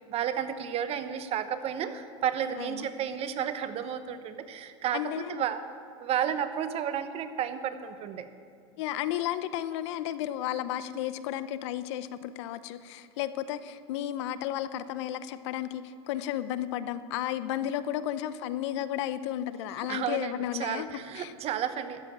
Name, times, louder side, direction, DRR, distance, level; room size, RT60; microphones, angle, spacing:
voice 1, 0.1-5.6 6.0-8.3 19.9-22.0, right 9 dB, 45° right, 11 dB, 1.0 m, -32 dB
voice 2, 2.6-2.9 4.9-5.4 8.8-20.9 21.1-21.3, left 12 dB, 75° left, 14 dB, 0.7 m, -33 dB
13.0 x 7.6 x 8.7 m, 2.4 s
supercardioid pair, 110°, 15 cm